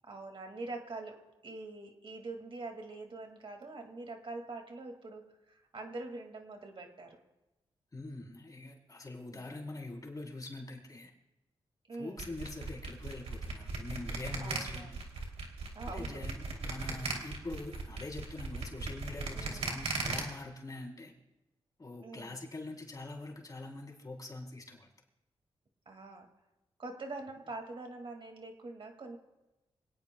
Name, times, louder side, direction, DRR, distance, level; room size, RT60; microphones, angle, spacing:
voice 1, 0.0-7.2 9.3-9.6 11.9-12.3 14.4-15.0 15.8-16.2 19.3-19.8 22.0-22.4 25.9-26.3 26.8-29.2, right 2 dB, 55° right, 4 dB, 2.1 m, -44 dB
voice 2, 7.9-11.1 12.0-15.0 15.9-21.1 21.8-24.9, left 2 dB, 35° left, -1 dB, 3.6 m, -44 dB
sound 1, 12.2-20.2, right 3 dB, 85° right, 2.8 m, -37 dB
26.0 x 18.0 x 2.3 m, 1.0 s
cardioid pair, 80°, 11 cm